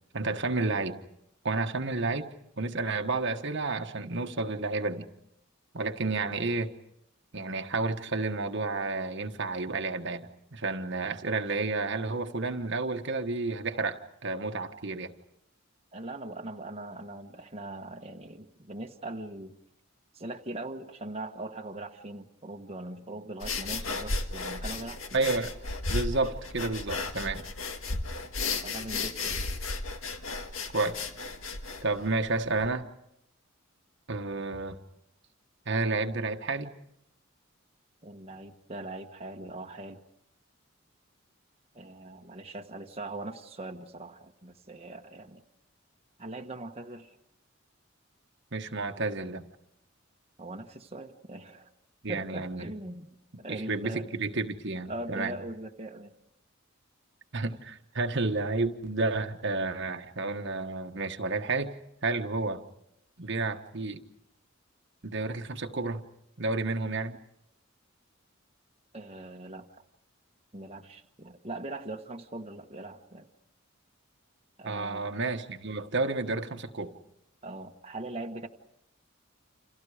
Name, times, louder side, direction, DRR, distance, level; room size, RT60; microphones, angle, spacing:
voice 1, 0.1-1.0 1.4-2.3 2.6-5.1 5.7-6.7 7.3-15.1 25.1-25.5 25.9-27.5 30.7-30.9 31.8-32.9 34.1-34.8 35.7-36.7 48.5-49.4 52.0-52.7 53.5-55.3 57.3-61.7 62.0-62.6 63.2-64.0 65.0-66.0 66.4-67.2 74.6-76.9, right 3 dB, 60° right, 5 dB, 1.4 m, -31 dB
voice 2, 15.9-19.5 20.1-25.3 28.6-29.4 38.0-40.0 41.7-45.4 46.2-47.2 50.4-51.7 52.1-53.1 53.4-54.1 54.8-56.1 68.9-69.7 70.5-73.3 74.6-75.1 77.4-78.5, right 2 dB, 30° right, 2 dB, 1.3 m, -41 dB
sound 1, 23.4-32.7, left 3 dB, 75° left, 2.0 m, -34 dB
29.5 x 28.0 x 5.0 m, 0.78 s
head